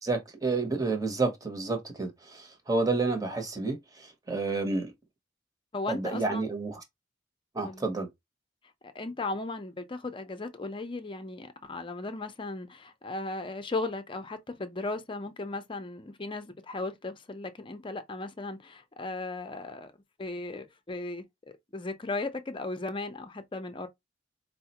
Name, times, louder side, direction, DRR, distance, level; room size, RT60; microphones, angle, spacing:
voice 1, 0.0-4.9 5.9-6.8 7.5-8.1, right 3 dB, 20° right, 0.9 m, -30 dB
voice 2, 5.7-6.5 7.6-7.9 8.9-19.9 20.2-21.2 21.7-23.9, left 2 dB, 30° left, 0.6 m, -36 dB
4.6 x 2.1 x 2.9 m
head